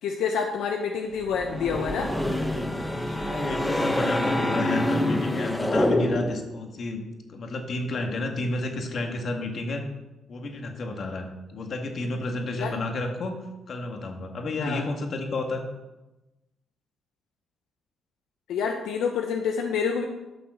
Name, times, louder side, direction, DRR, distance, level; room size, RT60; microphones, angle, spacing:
voice 1, 0.0-2.1 12.5-12.7 14.6-14.8 18.5-20.1, left 6 dB, 80° left, 3 dB, 0.9 m, -28 dB
sound 1, 1.2-6.5, left 1 dB, 10° left, 1.2 m, -26 dB
voice 2, 3.2-9.8 10.3-15.7, left 2 dB, 55° left, 3 dB, 1.9 m, -31 dB
11.5 x 6.0 x 6.4 m, 1.0 s
cardioid pair, 90°, 0 cm